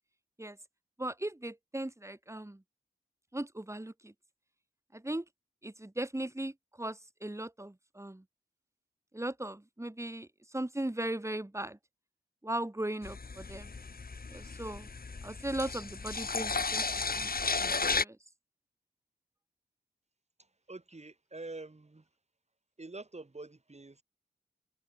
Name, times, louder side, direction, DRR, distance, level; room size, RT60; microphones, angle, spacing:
voice 1, 1.0-2.6 3.3-4.1 4.9-5.2 5.6-6.5 6.8-8.2 9.1-10.3 10.5-11.8 12.4-13.7 14.3-14.9 15.2-16.9 17.2-17.3 17.6-17.8 18.0-18.2, right 1 dB, 15° right, 2.6 m, -37 dB
sound 1, 13.0-18.0, left 4 dB, 55° left, 3.5 m, -34 dB
voice 2, 20.4-22.1 22.8-24.0, right 2 dB, 40° right, 7.1 m, -46 dB
cardioid pair, 55°, 18 cm